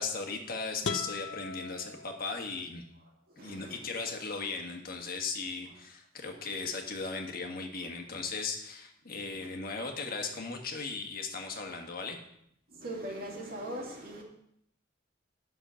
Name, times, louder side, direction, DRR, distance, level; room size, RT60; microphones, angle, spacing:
voice 1, 0.0-2.8 3.4-12.2, left 4 dB, 50° left, 1.5 m, -37 dB
sound 1, 0.8-2.7, left 5 dB, 85° left, 0.8 m, -39 dB
voice 2, 3.3-3.8 6.2-6.6 9.1-9.5 11.4-11.5 12.7-14.2, right 1 dB, 55° right, 2.6 m, -41 dB
11.0 x 6.5 x 6.3 m
head